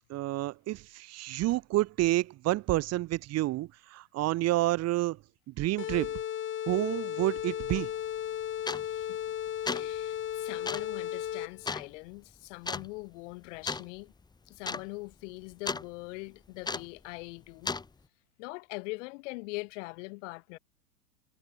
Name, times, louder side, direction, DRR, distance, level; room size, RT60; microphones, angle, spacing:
voice 1, 0.1-5.2 5.5-6.2 6.7-7.9, right 17 dB, 35° right, 1.9 m, -29 dB
sound 1, 5.8-11.7, left 10 dB, 25° left, 3.2 m, -35 dB
sound 2, 7.8-7.9 8.7-9.0 9.5-9.9 10.7-10.9 11.7-11.9 12.7-12.9 13.7-13.9 14.2-14.3 14.6-14.9 15.1-15.9 16.7-17.0 17.7-17.9, left 4 dB, 10° left, 1.8 m, -34 dB
voice 2, 8.9-9.2 9.7-14.1 14.5-17.7 18.4-20.6, left 26 dB, 50° left, 4.8 m, -42 dB
hypercardioid pair, 105°, 46 cm